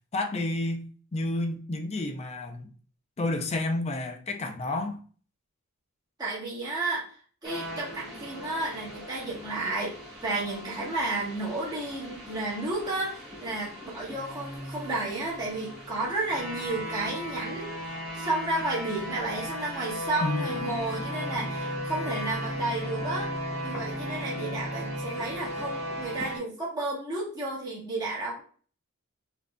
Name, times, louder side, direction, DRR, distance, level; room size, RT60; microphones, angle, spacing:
voice 1, 0.1-2.7 3.2-5.0 20.2-20.4, left 2 dB, 30° left, 0.5 m, -30 dB
voice 2, 6.2-10.0 10.2-23.3 23.6-28.4, right 2 dB, 20° right, 1.1 m, -32 dB
sound 1, 7.4-26.4, equal, ahead, 1.3 m, -36 dB
5.0 x 2.6 x 2.2 m
head